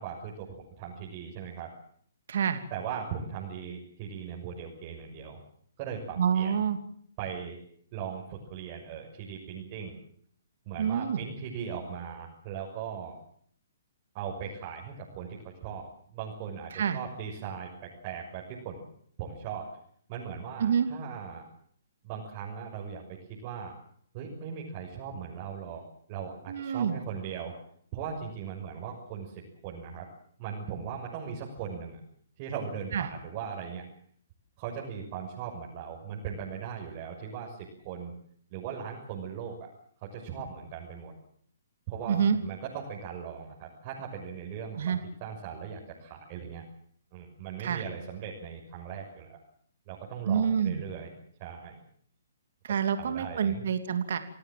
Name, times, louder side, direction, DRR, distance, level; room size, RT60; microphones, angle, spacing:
voice 1, 0.0-1.7 2.7-5.4 5.8-6.5 7.2-7.6 7.9-9.9 10.7-13.2 14.1-18.9 19.2-19.7 20.1-21.4 22.0-23.7 24.1-25.8 26.1-27.5 27.9-30.1 30.4-32.0 32.4-33.8 34.6-38.1 38.5-39.7 40.0-41.1 41.9-46.6 47.1-49.4 49.9-51.1 51.4-51.8 53.0-53.6, right 7 dB, 35° right, -3 dB, 6.6 m, -39 dB
voice 2, 2.3-2.6 6.2-6.8 10.8-11.2 16.7-17.0 20.6-20.9 26.5-27.0 32.9-33.1 42.1-42.4 44.7-45.0 47.6-47.8 50.2-50.8 52.6-54.2, right 7 dB, 60° right, 9 dB, 2.8 m, -27 dB
28.5 x 17.5 x 7.7 m, 0.63 s
figure-of-eight pair, 130°, 0 cm